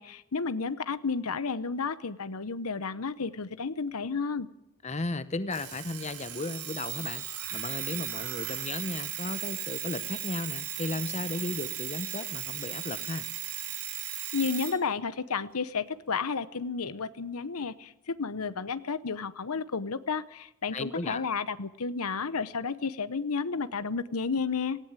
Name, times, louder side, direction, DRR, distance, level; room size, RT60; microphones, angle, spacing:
voice 1, 0.0-4.5 14.3-24.8, left 5 dB, 80° left, 15 dB, 0.9 m, -32 dB
voice 2, 4.8-13.3 20.7-21.2, left 2 dB, 30° left, 13 dB, 0.9 m, -35 dB
Alarm, 5.5-14.8, right 12 dB, 85° right, 3.5 m, -36 dB
18.5 x 16.5 x 9.0 m, 0.85 s
head